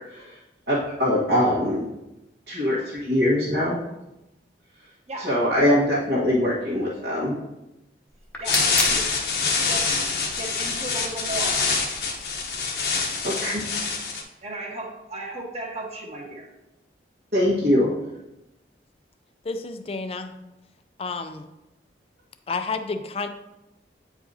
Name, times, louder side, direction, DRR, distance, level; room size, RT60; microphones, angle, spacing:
voice 1, 0.7-1.8 2.5-3.8 5.2-7.3 13.2-13.6 17.3-17.9, left 1 dB, 65° right, -8 dB, 1.4 m, -22 dB
sound 1, 8.1-13.3, left 1 dB, 5° left, 0.8 m, -36 dB
sound 2, 8.4-14.2, left 5 dB, 65° left, 0.9 m, -25 dB
voice 2, 10.3-11.6 14.4-16.5, right 2 dB, 35° right, -1 dB, 1.2 m, -35 dB
voice 3, 19.4-20.3 21.0-21.5 22.5-23.3, left 4 dB, 30° left, 9 dB, 0.4 m, -30 dB
8.8 x 4.7 x 2.7 m, 0.94 s
head